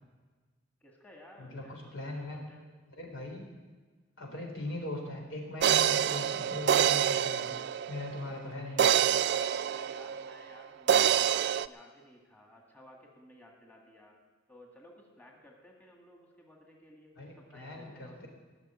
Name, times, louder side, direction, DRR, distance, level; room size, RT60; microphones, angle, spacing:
voice 1, 0.8-2.6 9.3-14.2 14.5-18.3, left 1 dB, 10° left, -1 dB, 1.9 m, -56 dB
voice 2, 1.4-2.4 3.0-3.4 4.2-8.9 17.2-18.3, left 2 dB, 75° left, 0 dB, 3.9 m, -40 dB
sound 1, 5.6-8.2 8.8-10.5 10.9-11.7, right 9 dB, 55° right, 0.3 m, -26 dB
17.5 x 6.7 x 10.0 m, 1.4 s
head